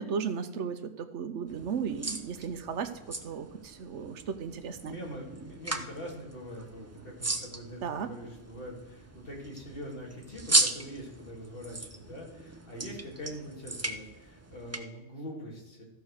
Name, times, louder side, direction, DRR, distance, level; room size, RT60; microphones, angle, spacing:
voice 1, 0.0-5.0 7.8-8.1, right 6 dB, 75° right, 9 dB, 1.1 m, -35 dB
sound 1, 1.5-14.8, right 2 dB, 20° right, 0.5 m, -36 dB
voice 2, 4.7-15.8, equal, 50° left, -2 dB, 2.8 m, -43 dB
14.0 x 4.6 x 6.4 m, 1.0 s
omnidirectional pair, 1.2 m